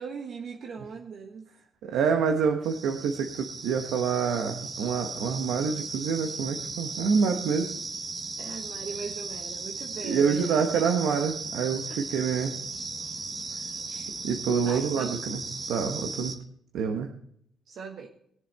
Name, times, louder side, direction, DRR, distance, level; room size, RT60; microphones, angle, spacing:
voice 1, 0.0-1.5 8.4-10.8 11.9-12.0 13.9-14.1 14.6-15.2 17.7-18.1, right 5 dB, 65° right, 2 dB, 1.3 m, -40 dB
voice 2, 1.8-7.7 10.0-12.6 13.5-13.6 14.2-15.4 15.7-16.3 16.7-17.1, right 6 dB, 85° right, 4 dB, 1.1 m, -27 dB
sound 1, 2.6-16.4, right 3 dB, 45° right, 1.9 m, -37 dB
20.5 x 7.1 x 4.2 m, 0.69 s
cardioid pair, 90°, 0 cm